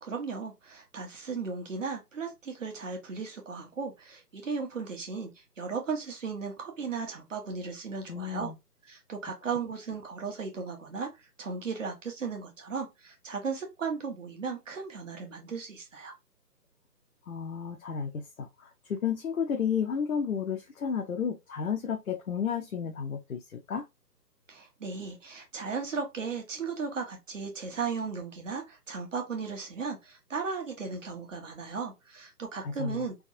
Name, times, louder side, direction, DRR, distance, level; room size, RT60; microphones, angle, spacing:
voice 1, 0.0-8.5 8.8-16.1 24.5-33.2, right 5 dB, 50° right, 1.3 m, -36 dB
voice 2, 8.1-8.5 17.3-23.8 32.6-33.1, left 7 dB, 60° left, 0.7 m, -32 dB
3.5 x 3.1 x 2.6 m
figure-of-eight pair, 155°, 49 cm